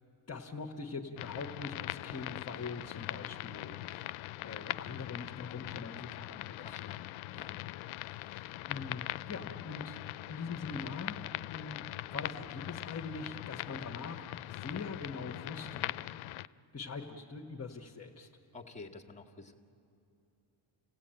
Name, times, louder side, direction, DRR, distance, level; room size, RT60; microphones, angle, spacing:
voice 1, 0.3-6.9 8.0-10.0 10.3-16.0 16.7-18.3, left 4 dB, 30° left, 0 dB, 1.3 m, -43 dB
sound 1, 1.2-16.5, left 17 dB, 80° left, 0.5 m, -41 dB
voice 2, 6.6-7.6 18.5-19.5, left 3 dB, 15° left, 1 dB, 1.8 m, -50 dB
30.0 x 16.5 x 8.9 m, 2.7 s
cardioid pair, 95°, 47 cm